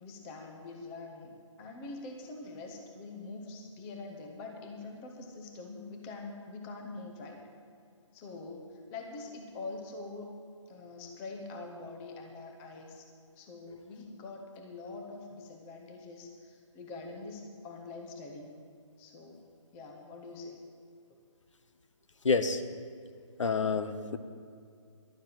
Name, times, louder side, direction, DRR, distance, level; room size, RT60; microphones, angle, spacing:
voice 1, 0.0-7.5 8.1-10.3 10.7-13.1 13.4-18.5 19.0-19.4 19.7-20.6, left 3 dB, 10° left, 2 dB, 0.8 m, -44 dB
voice 2, 22.2-22.6 23.4-24.2, left 4 dB, 70° left, 10 dB, 1.0 m, -28 dB
12.0 x 7.3 x 9.3 m, 2.3 s
hypercardioid pair, 165°, 17 cm